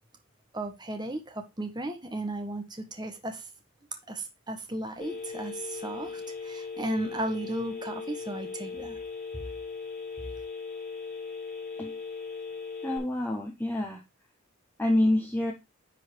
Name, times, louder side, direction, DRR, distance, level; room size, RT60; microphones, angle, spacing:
voice 1, 0.5-3.4 4.1-9.0, right 1 dB, 20° right, 6 dB, 1.2 m, -35 dB
Telephone, 5.0-13.0, left 4 dB, 35° left, 2.8 m, -38 dB
voice 2, 12.8-14.0 14.8-15.5, left 1 dB, 10° left, 1 dB, 0.8 m, -27 dB
9.8 x 3.9 x 4.6 m, 0.24 s
head